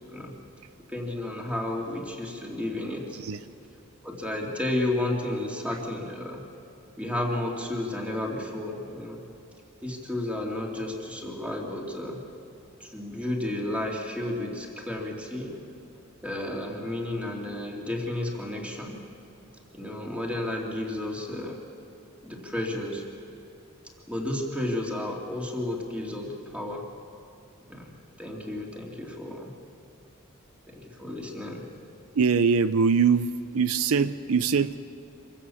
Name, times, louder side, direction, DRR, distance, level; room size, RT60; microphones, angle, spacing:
voice 1, 0.9-3.2 4.0-6.4 7.0-9.2 9.8-12.2 12.8-15.6 16.2-19.0 19.7-21.6 22.2-23.0 24.1-26.8 27.7-27.9 28.2-29.5 30.7-31.6, left 1 dB, 5° right, -1 dB, 2.7 m, -32 dB
voice 2, 3.1-3.4 5.7-5.8 32.1-34.8, right 5 dB, 80° right, 14 dB, 0.5 m, -23 dB
26.0 x 16.0 x 7.1 m, 2.7 s
head